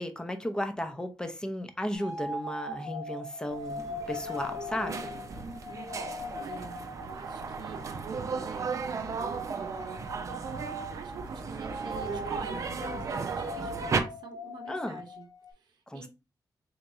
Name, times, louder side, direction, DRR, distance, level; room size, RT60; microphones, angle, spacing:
voice 1, 0.0-5.1 14.7-15.0 15.9-16.1, left 1 dB, 10° left, 0.7 m, -35 dB
sound 1, 1.9-8.9 9.2-15.5, left 1 dB, 90° left, 1.8 m, -41 dB
sound 2, 3.5-14.0, right 5 dB, 50° right, 0.6 m, -35 dB
voice 2, 5.4-16.1, right 5 dB, 85° right, 0.7 m, -46 dB
4.2 x 3.3 x 2.6 m
wide cardioid pair, 110°, 7 cm